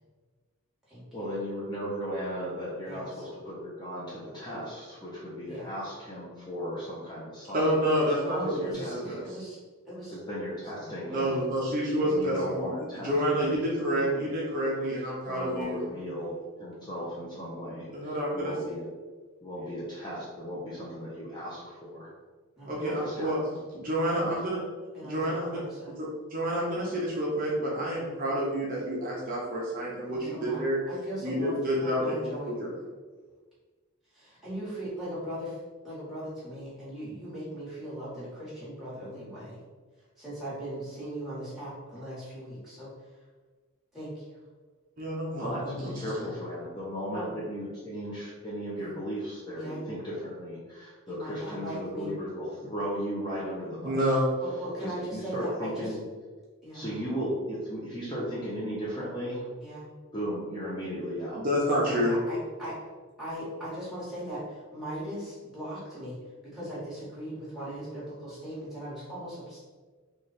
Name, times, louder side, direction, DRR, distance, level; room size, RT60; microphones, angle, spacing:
voice 1, 1.1-7.7 8.4-9.2 10.1-11.4 12.0-14.3 15.3-16.3 16.6-18.9 19.4-22.1 22.7-23.6 45.4-54.2 54.8-56.0 56.7-59.5 60.1-61.4 61.8-62.0, equal, 20° left, -7 dB, 0.6 m, -36 dB
voice 2, 2.8-3.2 5.5-5.7 8.2-9.6 9.9-10.2 10.8-11.5 13.0-13.2 15.8-16.3 22.6-22.7 23.2-23.4 24.0-24.2 24.9-25.9 30.1-30.6 30.9-31.5 31.8-32.5 34.1-35.6 35.8-39.6 40.2-42.9 43.9-44.2 47.1-47.3 48.8-48.9 49.5-49.8 51.1-52.1 54.4-56.0 56.6-57.0 59.6-59.9 61.9-62.7 63.2-66.2 66.4-69.6, equal, ahead, -10 dB, 1.3 m, -39 dB
voice 3, 7.5-9.2 11.1-15.8 17.9-18.5 22.7-23.4 23.7-24.6 25.0-25.6 26.0-30.8 31.2-32.7 45.0-46.3 53.8-54.3 61.3-62.2, equal, 40° right, -5 dB, 0.6 m, -29 dB
3.1 x 2.4 x 4.0 m, 1.4 s
head